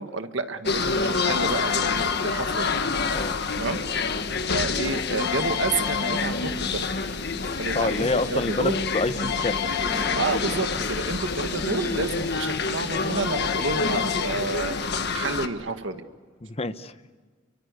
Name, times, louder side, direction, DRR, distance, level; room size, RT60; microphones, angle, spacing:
voice 1, 0.0-2.8 3.5-3.8 4.5-6.9 7.6-8.8 10.1-16.0, right 3 dB, 70° right, 8 dB, 1.7 m, -30 dB
sound 1, 0.7-15.5, left 4 dB, 60° left, 1.6 m, -27 dB
voice 2, 7.7-9.6 16.4-16.9, left 3 dB, 30° left, 12 dB, 1.0 m, -27 dB
Fireworks, 16.1-16.2 16.4-16.5, left 1 dB, 10° left, 1.6 m, -47 dB
30.0 x 24.0 x 8.3 m, 1.5 s
head